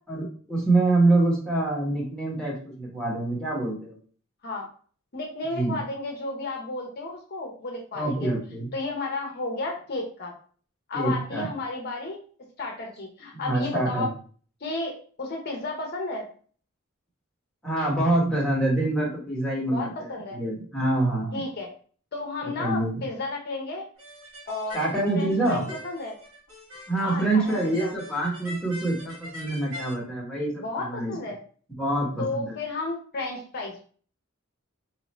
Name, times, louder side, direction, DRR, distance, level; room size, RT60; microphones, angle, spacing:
voice 1, 0.1-4.0 5.5-5.8 7.9-8.7 10.9-11.5 13.3-14.1 17.6-21.4 22.6-23.0 24.7-25.6 26.9-31.2 31.8-32.6, right 2 dB, 5° left, -5 dB, 1.2 m, -26 dB
voice 2, 5.1-8.3 8.7-10.3 10.9-12.2 12.6-14.1 14.6-16.3 19.7-20.4 21.3-21.7 22.1-23.8 24.5-24.8 25.2-26.1 27.0-27.9 30.6-31.4 32.2-33.8, left 2 dB, 50° left, 1 dB, 0.8 m, -33 dB
sound 1, 24.0-29.9, left 1 dB, 85° right, 1.7 m, -43 dB
3.1 x 2.6 x 4.2 m, 0.44 s
head